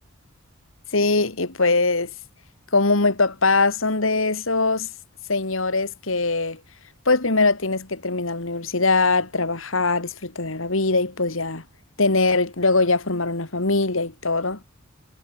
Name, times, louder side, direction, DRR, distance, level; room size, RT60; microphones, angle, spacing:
voice 1, 0.9-2.1 2.7-4.9 5.3-6.6 7.1-11.6 12.0-14.6, left 3 dB, 70° left, 2.4 m, -22 dB
head